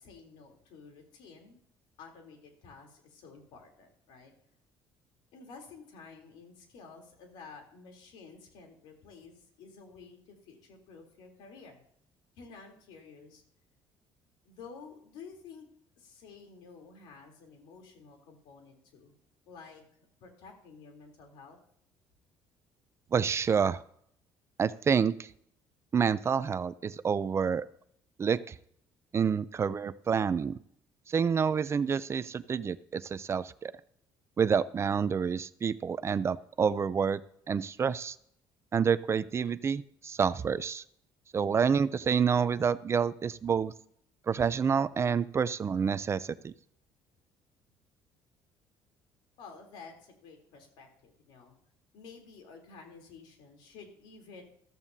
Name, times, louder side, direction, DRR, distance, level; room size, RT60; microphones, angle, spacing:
voice 1, 0.0-1.6 2.0-4.3 5.3-11.8 12.4-13.4 14.4-15.6 16.0-19.1 19.4-19.8 20.2-21.6 49.4-51.6 51.9-54.4, left 5 dB, 85° left, 2 dB, 3.4 m, -51 dB
voice 2, 23.1-23.8 24.6-25.3 25.9-27.7 28.2-28.5 29.1-30.6 31.1-33.7 34.4-37.2 37.5-38.2 38.7-40.8 41.3-43.7 44.3-46.5, right 6 dB, 35° right, 16 dB, 0.5 m, -28 dB
14.5 x 13.5 x 2.8 m, 0.68 s
cardioid pair, 105°, 8 cm